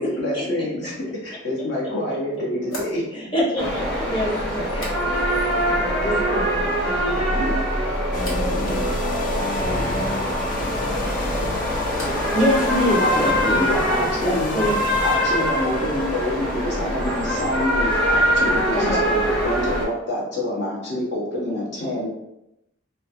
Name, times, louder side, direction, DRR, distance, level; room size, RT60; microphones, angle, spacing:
voice 1, 0.0-3.0 13.0-14.6 15.0-22.1, left 1 dB, 60° left, -5 dB, 1.1 m, -27 dB
sound 1, 1.4-1.5 2.6-5.5 5.8-6.4 6.7-7.3 8.2-8.5 10.9-12.4 12.7-13.3, equal, 80° left, 1.1 m, -41 dB
voice 2, 3.1-5.0 5.4-7.6 8.1-8.9 9.6-10.3 12.3-13.7 14.2-14.7 18.7-19.0, equal, 25° left, -6 dB, 1.0 m, -26 dB
sound 2, 3.6-19.8, equal, 5° left, 0.8 m, -23 dB
sound 3, 8.1-18.5, left 2 dB, 40° left, 0.4 m, -33 dB
voice 3, 8.6-9.0 9.3-11.6 13.4-13.5 13.9-14.3, right 2 dB, 30° right, 2 dB, 0.3 m, -37 dB
4.2 x 2.2 x 2.6 m, 0.86 s
head